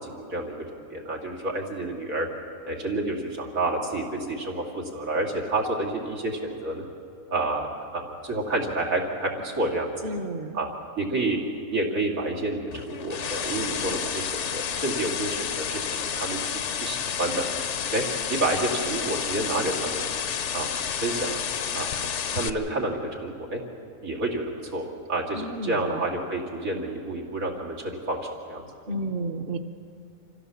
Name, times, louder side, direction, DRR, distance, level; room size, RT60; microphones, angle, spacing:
voice 1, 0.0-2.3 2.7-6.8 7.3-7.7 7.9-9.9 10.5-10.7 11.0-11.4 11.7-16.4 16.8-17.4 17.9-18.0 18.3-20.0 20.5-20.7 21.0-21.3 21.7-21.9 22.3-23.6 24.0-28.7, right 2 dB, 90° right, -1 dB, 3.0 m, -29 dB
voice 2, 10.0-10.6 25.3-26.0 28.9-29.6, right 2 dB, 45° right, 8 dB, 1.0 m, -31 dB
sound 1, 12.7-22.5, left 7 dB, 60° left, 1.0 m, -30 dB
26.0 x 15.5 x 7.0 m, 2.6 s
omnidirectional pair, 1.4 m